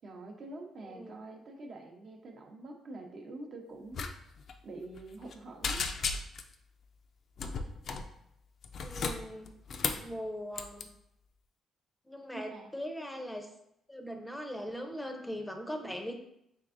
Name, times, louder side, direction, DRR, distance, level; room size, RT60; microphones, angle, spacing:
voice 1, 0.0-4.1 4.6-5.8 12.3-12.7, right 2 dB, 55° right, 2 dB, 0.7 m, -46 dB
voice 2, 0.8-1.2 8.8-9.5 10.0-10.9 12.0-13.5 13.9-16.2, equal, 5° left, 4 dB, 0.6 m, -40 dB
sound 1, 3.9-4.1 4.4-4.5 4.9-5.3 5.6-6.5 7.4-8.1 8.6-10.1 10.5-10.8, left 5 dB, 55° left, 0.4 m, -34 dB
4.6 x 3.3 x 2.5 m, 0.78 s
cardioid pair, 90°, 0 cm